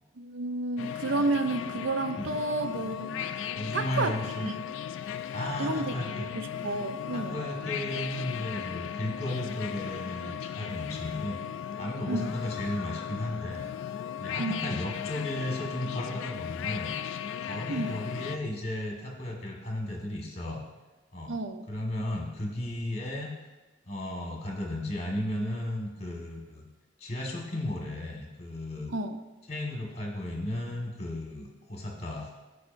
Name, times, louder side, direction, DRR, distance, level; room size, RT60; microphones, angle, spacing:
voice 1, 0.2-3.5 3.7-4.6 5.6-7.4 12.1-12.3 14.4-14.6 17.7-18.0 21.3-21.7 28.9-29.2, right 2 dB, 70° right, 9 dB, 0.5 m, -31 dB
sound 1, 0.8-18.4, left 9 dB, 75° left, 0.3 m, -36 dB
voice 2, 3.5-4.5 5.3-6.3 7.1-11.4 11.8-13.7 14.2-16.9 17.4-20.6 21.1-21.4 21.7-23.3 23.9-26.7 27.0-28.9 29.5-32.3, left 1 dB, 35° left, -1 dB, 1.4 m, -34 dB
14.0 x 4.9 x 2.6 m, 1.1 s
head